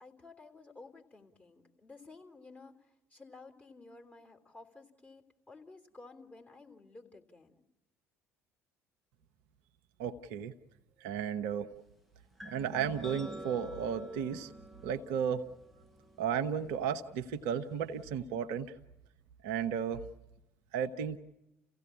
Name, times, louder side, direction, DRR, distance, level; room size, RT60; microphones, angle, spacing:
voice 1, 0.0-7.5, left 3 dB, 20° left, 1 dB, 3.3 m, -54 dB
voice 2, 10.0-10.5 11.0-11.7 12.4-14.5 14.8-15.4 16.2-18.7 19.4-20.0 20.7-21.2, right 8 dB, 65° right, 9 dB, 0.9 m, -34 dB
sound 1, 12.4-18.1, right 1 dB, ahead, 1.1 m, -50 dB
30.0 x 16.0 x 8.4 m, 0.94 s
figure-of-eight pair, 55°, 7 cm